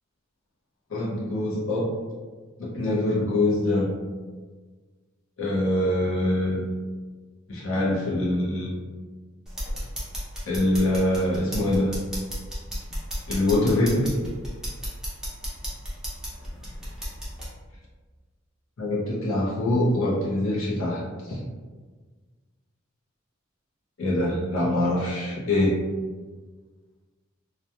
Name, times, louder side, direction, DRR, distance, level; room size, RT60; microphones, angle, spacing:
voice 1, 0.9-1.9 2.6-3.9 5.4-6.6 7.5-8.8 10.5-12.0 13.3-14.1 18.8-21.0 21.3-21.4 24.0-25.8, left 1 dB, 75° left, -6 dB, 0.7 m, -24 dB
sound 1, 9.5-17.5, equal, 5° right, 0.6 m, -34 dB
2.8 x 2.3 x 2.3 m, 1.4 s
head